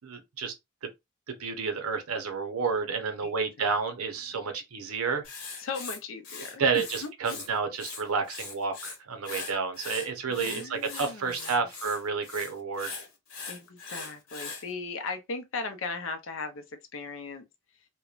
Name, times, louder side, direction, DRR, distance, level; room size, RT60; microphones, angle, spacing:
voice 1, 0.0-0.5 1.3-5.2 6.6-12.9, right 5 dB, 85° right, 0.7 m, -30 dB
Writing, 5.2-7.5 7.7-9.0 9.2-14.6, left 4 dB, 80° left, 1.1 m, -40 dB
voice 2, 5.6-7.4 10.3-11.6 13.5-17.5, left 4 dB, 60° left, 0.5 m, -38 dB
2.9 x 2.1 x 2.4 m
head